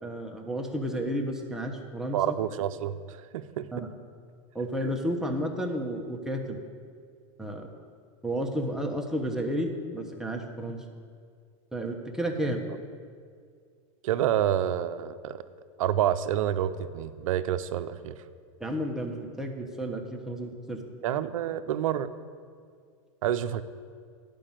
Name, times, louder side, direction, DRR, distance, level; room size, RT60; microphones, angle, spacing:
voice 1, 0.0-2.3 3.7-3.9 4.5-6.6 7.4-7.7 8.2-10.8 11.7-12.6 18.6-20.8, equal, 5° right, 1 dB, 1.1 m, -32 dB
voice 2, 2.1-3.8 14.0-15.4 15.8-18.1 21.0-22.1 23.2-23.6, right 11 dB, 80° right, 12 dB, 0.6 m, -28 dB
11.0 x 5.3 x 7.4 m, 2.1 s
hypercardioid pair, 115°, 17 cm